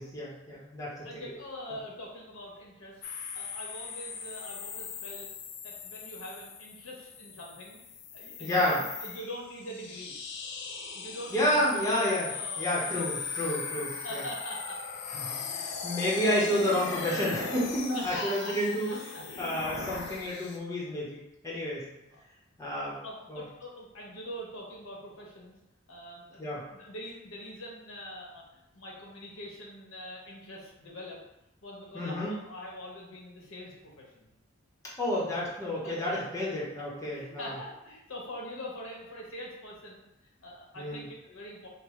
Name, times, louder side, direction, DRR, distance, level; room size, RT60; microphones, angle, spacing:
voice 1, 0.0-1.2 8.4-8.8 11.3-12.3 12.6-14.2 15.2-18.9 19.4-21.8 22.6-23.0 23.3-23.4 26.4-26.6 31.9-32.3 35.0-37.5 40.8-41.0, left 1 dB, 15° left, -6 dB, 0.9 m, -30 dB
voice 2, 1.0-3.0 3.3-5.3 5.6-7.8 8.1-10.2 10.9-12.8 14.0-14.8 15.9-16.0 17.9-18.5 18.9-19.2 22.0-22.2 23.0-25.6 25.9-31.2 31.6-34.3 35.8-36.2 36.7-41.7, equal, 80° left, -2 dB, 1.0 m, -43 dB
sound 1, 3.0-20.6, left 5 dB, 55° left, 0.5 m, -39 dB
5.2 x 2.2 x 3.1 m, 0.90 s
head